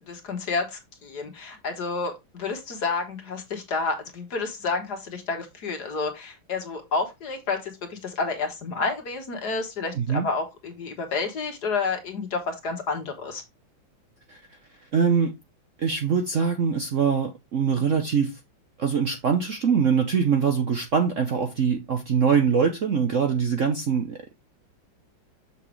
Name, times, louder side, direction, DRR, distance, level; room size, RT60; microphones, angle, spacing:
voice 1, 0.0-13.4, left 4 dB, 55° left, 1.9 m, -30 dB
voice 2, 10.0-10.3 14.3-14.4 14.9-15.3 15.8-18.4 18.8-24.3, right 6 dB, 55° right, 0.9 m, -23 dB
7.0 x 5.8 x 3.2 m
omnidirectional pair, 2.2 m